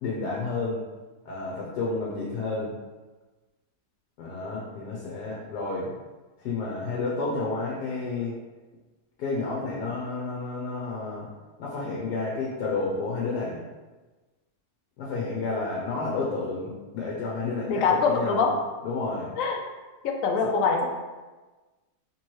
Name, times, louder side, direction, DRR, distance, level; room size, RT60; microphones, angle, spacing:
voice 1, 0.0-0.8 1.2-2.7 4.2-5.9 6.4-8.3 9.2-11.3 11.6-13.6 15.0-18.5 18.8-19.3, left 3 dB, 80° left, -4 dB, 1.3 m, -30 dB
voice 2, 17.7-18.5 19.3-19.6 20.0-20.9, left 5 dB, 65° left, 3 dB, 0.9 m, -24 dB
3.5 x 3.1 x 4.4 m, 1.2 s
omnidirectional pair, 1.7 m